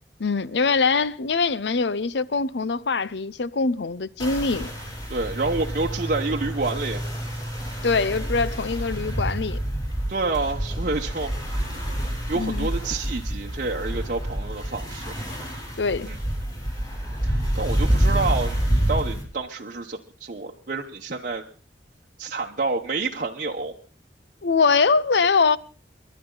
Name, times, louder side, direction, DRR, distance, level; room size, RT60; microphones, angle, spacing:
voice 1, 0.2-4.7 7.8-9.6 12.3-12.7 15.8-16.1 24.4-25.6, left 4 dB, 70° left, 0.7 m, -23 dB
sound 1, 4.2-19.2, right 1 dB, 20° left, 5.9 m, -28 dB
voice 2, 5.1-7.0 10.1-11.3 12.3-15.1 16.1-16.2 17.2-21.4 22.2-23.7, right 3 dB, 50° right, 1.0 m, -28 dB
29.0 x 11.5 x 3.9 m
head